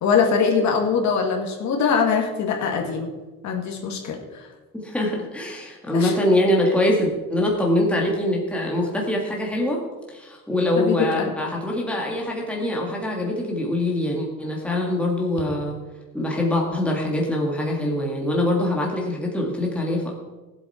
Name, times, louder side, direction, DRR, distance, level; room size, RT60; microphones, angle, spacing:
voice 1, 0.0-3.1 3.4-4.4 5.9-6.1 10.8-11.3, left 6 dB, 55° left, 2 dB, 2.0 m, -22 dB
voice 2, 4.7-9.8 10.1-15.8 16.1-20.1, left 1 dB, 5° left, -2 dB, 1.9 m, -23 dB
18.0 x 8.0 x 4.4 m, 1.2 s
cardioid pair, 170°, 33 cm